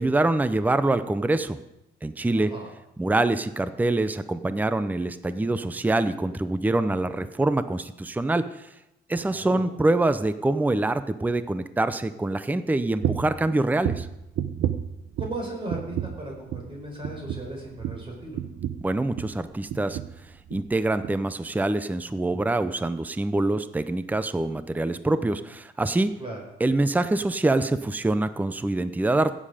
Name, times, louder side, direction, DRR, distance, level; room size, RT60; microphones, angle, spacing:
voice 1, 0.0-1.6 2.0-2.5 3.0-8.7 9.1-14.1 18.8-20.0 20.5-26.1 26.6-29.3, right 2 dB, 10° right, 12 dB, 0.6 m, -25 dB
voice 2, 2.3-2.7 9.3-9.6 15.2-18.4 26.2-26.4, right 1 dB, 25° right, -1 dB, 4.6 m, -36 dB
sound 1, 13.0-13.4 13.8-15.4 15.7-16.2 16.5-16.7 17.0-19.4 19.7-20.2 20.5-20.7 21.0-21.2, right 10 dB, 75° right, 0.8 m, -31 dB
16.5 x 7.6 x 5.0 m, 0.87 s
cardioid pair, 90°, 20 cm